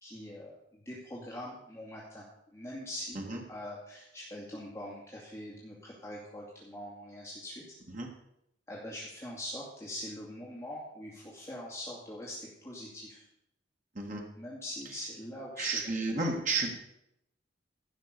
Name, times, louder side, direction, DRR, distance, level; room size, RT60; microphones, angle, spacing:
voice 1, 0.0-2.2 2.5-3.2 3.5-7.8 8.7-13.3 14.4-15.8, left 1 dB, 15° left, -6 dB, 2.5 m, -43 dB
voice 2, 15.6-16.7, right 3 dB, 40° right, 1 dB, 1.8 m, -32 dB
16.0 x 5.8 x 6.8 m, 0.79 s
head